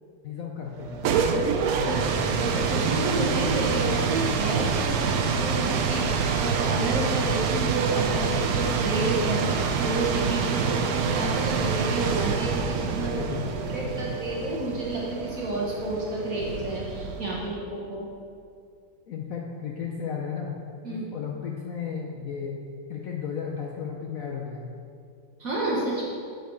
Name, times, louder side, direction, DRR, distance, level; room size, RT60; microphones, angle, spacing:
voice 1, 0.2-1.0 1.6-1.9 13.0-14.2 19.1-20.5 20.9-22.5 22.9-24.7, left 7 dB, 65° left, 0 dB, 0.9 m, -34 dB
sound 1, 0.8-17.5, right 5 dB, 70° right, 0.9 m, -26 dB
voice 2, 1.5-13.2 13.7-18.1 20.8-21.0 25.4-26.2, right 2 dB, 55° right, -4 dB, 1.4 m, -30 dB
9.3 x 4.7 x 4.5 m, 2.3 s
omnidirectional pair, 2.0 m